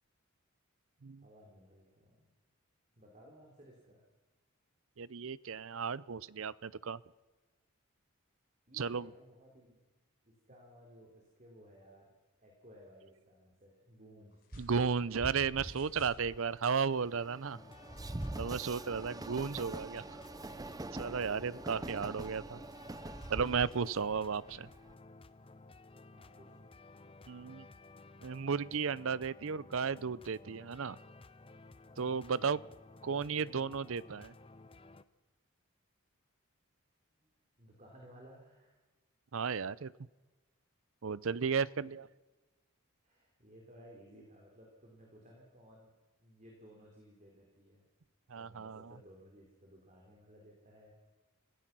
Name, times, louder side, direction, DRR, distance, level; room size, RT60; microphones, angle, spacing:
voice 1, 1.2-2.3 3.0-4.0 8.7-9.8 10.2-12.1 12.4-14.4 26.1-26.9 32.3-32.5 37.2-37.3 37.6-38.8 41.8-41.9 43.0-45.9 46.2-47.8 48.3-50.9, equal, 35° right, -1 dB, 4.0 m, -58 dB
voice 2, 5.0-7.0 8.7-9.1 14.6-17.6 18.4-20.0 20.9-22.6 23.3-24.7 27.3-27.7 28.2-31.0 32.0-32.6 33.0-34.3 39.3-39.9 41.0-42.1 48.3-48.9, right 6 dB, 65° right, 20 dB, 0.6 m, -34 dB
sound 1, 14.3-14.7 15.6-16.2 17.1-17.2, left 6 dB, 40° left, 6.6 m, -63 dB
Train, 14.5-24.9, right 2 dB, 15° right, 0.6 m, -44 dB
sound 2, 17.5-35.0, left 2 dB, 25° left, 0.7 m, -56 dB
26.0 x 16.0 x 6.2 m, 1.2 s
head